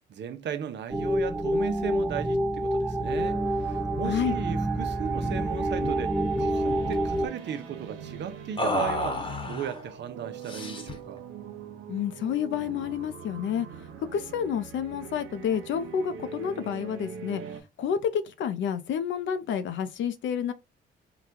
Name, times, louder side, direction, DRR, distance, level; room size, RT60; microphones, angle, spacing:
voice 1, 0.0-11.2, right 9 dB, 60° right, 0.7 m, -36 dB
sound 1, 0.9-7.3, right 1 dB, 5° right, 0.4 m, -27 dB
sound 2, 3.1-17.6, right 6 dB, 85° right, 0.9 m, -42 dB
voice 2, 4.0-4.4 11.9-13.7 14.1-17.4 17.8-20.5, left 8 dB, 70° left, 0.6 m, -29 dB
sound 3, 5.2-5.4 5.7-5.9 6.2-7.0 8.6-9.8 10.5-11.1, left 2 dB, 25° left, 1.0 m, -32 dB
3.9 x 2.3 x 4.4 m
cardioid pair, 90°, 20 cm